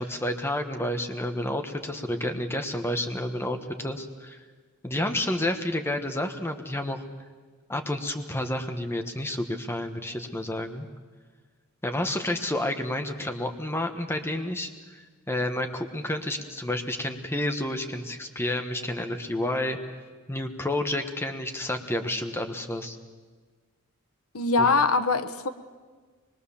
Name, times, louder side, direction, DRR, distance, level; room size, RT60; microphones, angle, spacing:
voice 1, 0.0-4.4 4.8-7.0 7.7-10.9 11.8-15.0 15.3-19.8 20.3-23.0, left 1 dB, 10° left, 5 dB, 1.3 m, -30 dB
voice 2, 24.3-25.5, left 3 dB, 85° left, 10 dB, 1.1 m, -22 dB
24.5 x 21.5 x 7.2 m, 1.5 s
head